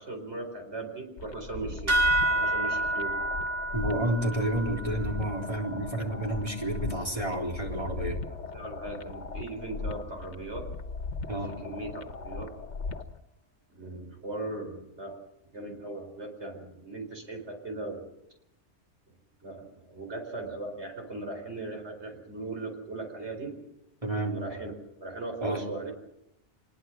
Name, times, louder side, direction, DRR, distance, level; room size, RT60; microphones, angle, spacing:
voice 1, 0.0-2.0 2.3-3.2 7.2-7.3 8.5-10.7 11.2-12.5 13.7-15.2 15.5-18.0 19.4-23.5 24.3-24.7 25.0-25.9, right 2 dB, 75° right, 3 dB, 4.7 m, -38 dB
sound 1, 1.2-13.2, left 4 dB, 80° left, 1.4 m, -38 dB
sound 2, 1.9-6.8, right 1 dB, 55° right, 3.1 m, -30 dB
voice 2, 3.7-8.2 11.3-11.5 24.0-24.4 25.4-25.6, right 1 dB, 30° right, 0 dB, 4.0 m, -30 dB
25.0 x 21.0 x 6.0 m, 0.86 s
omnidirectional pair, 1.2 m